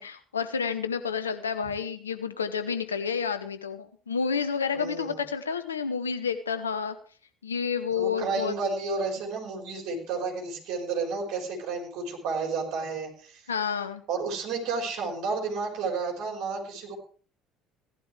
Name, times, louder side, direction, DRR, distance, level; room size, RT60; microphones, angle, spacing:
voice 1, 0.0-7.0 7.4-8.5 13.5-14.0, left 6 dB, 85° left, 10 dB, 0.9 m, -30 dB
voice 2, 4.7-5.2 7.9-13.4 14.1-16.9, right 4 dB, 60° right, 1 dB, 4.2 m, -31 dB
16.5 x 11.5 x 3.3 m, 0.40 s
hypercardioid pair, 60°, 0 cm